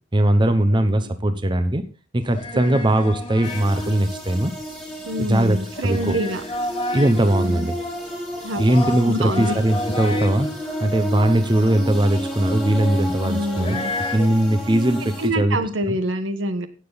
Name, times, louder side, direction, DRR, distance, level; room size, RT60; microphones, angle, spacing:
voice 1, 0.1-1.8 2.1-4.5 5.2-5.6 5.8-6.2 6.9-7.8 8.6-10.5 10.8-13.8 14.1-15.6 15.9-16.0, right 1 dB, 25° right, 9 dB, 0.8 m, -20 dB
voice 2, 0.7-1.1 2.5-2.8 5.0-6.4 7.4-7.7 8.4-9.6 13.2-13.9 15.0-16.7, equal, 80° right, 10 dB, 1.3 m, -27 dB
sound 1, 2.2-14.3, left 1 dB, 25° left, 1.5 m, -33 dB
sound 2, 3.4-15.3, equal, ahead, 2.7 m, -31 dB
16.5 x 6.9 x 4.0 m, 0.36 s
head